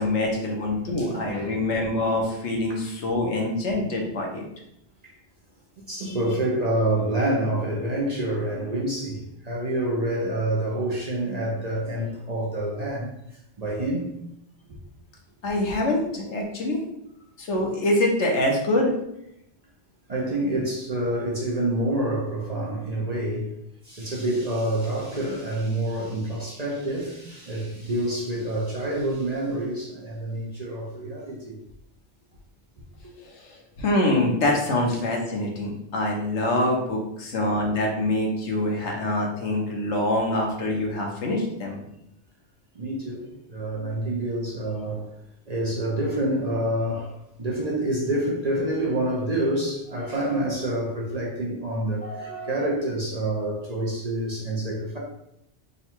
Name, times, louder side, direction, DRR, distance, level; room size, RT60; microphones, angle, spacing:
voice 1, 0.0-4.4 6.0-6.2 15.4-16.8 17.4-18.9 33.2-41.8 52.0-52.5, left 1 dB, 75° left, 0 dB, 1.2 m, -25 dB
voice 2, 1.0-1.6 2.7-2.8 5.0-5.1 5.8-13.1 13.6-14.2 20.1-23.6 23.8-31.6 42.7-45.1 45.5-55.0, right 1 dB, 40° right, -3 dB, 0.7 m, -27 dB
3.7 x 2.3 x 4.3 m, 0.80 s
omnidirectional pair, 1.2 m